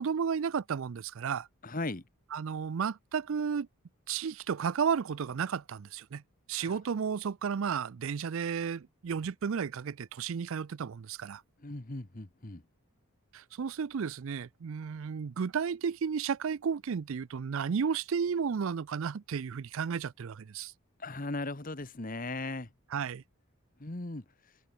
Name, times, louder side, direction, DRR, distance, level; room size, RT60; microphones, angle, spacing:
voice 1, 0.0-1.5 2.3-3.7 4.1-6.2 6.5-11.4 13.3-20.7 22.9-23.2, right 6 dB, 65° right, 0.4 m, -33 dB
voice 2, 1.6-2.0 6.6-6.8 11.6-12.6 21.0-22.7 23.8-24.2, left 2 dB, 40° left, 1.3 m, -37 dB
head